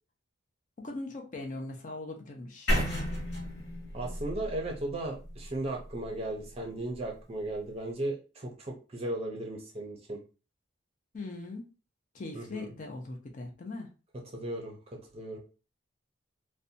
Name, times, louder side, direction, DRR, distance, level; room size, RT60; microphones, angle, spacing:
voice 1, 0.8-2.7 11.1-11.7 12.1-13.9, left 2 dB, 40° left, 3 dB, 0.4 m, -40 dB
sound 1, 2.7-6.6, equal, 55° left, 1.0 m, -33 dB
voice 2, 3.9-10.2 12.3-12.7 14.3-15.4, right 1 dB, 30° right, 1 dB, 0.5 m, -36 dB
2.6 x 2.1 x 2.6 m, 0.34 s
head